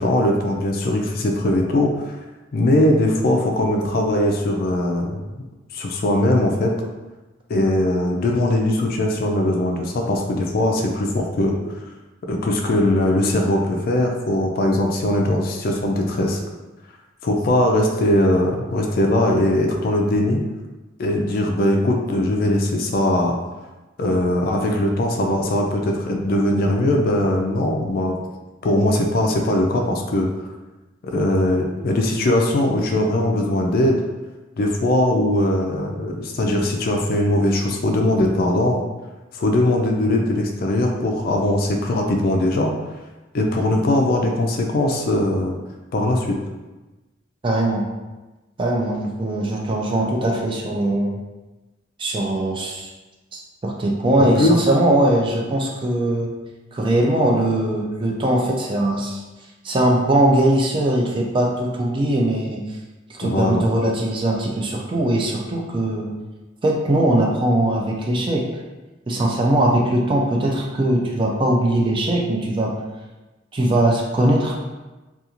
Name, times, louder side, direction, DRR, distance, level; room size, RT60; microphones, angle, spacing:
voice 1, 0.0-1.9 2.5-5.2 5.7-6.7 7.5-11.6 12.3-16.4 17.2-20.4 21.0-23.4 24.0-28.2 28.6-30.3 31.0-34.0 34.6-38.8 39.4-42.7 43.3-45.6 45.9-46.4 54.2-54.6 63.2-63.6, left 1 dB, 50° left, 1 dB, 0.3 m, -20 dB
voice 2, 47.4-47.8 48.6-51.2 52.0-52.9 53.3-56.3 56.7-59.2 59.6-62.6 63.1-66.1 66.6-68.5 69.1-72.7 73.5-74.6, right 1 dB, 25° right, -1 dB, 0.3 m, -20 dB
2.4 x 2.3 x 2.9 m, 1.1 s
head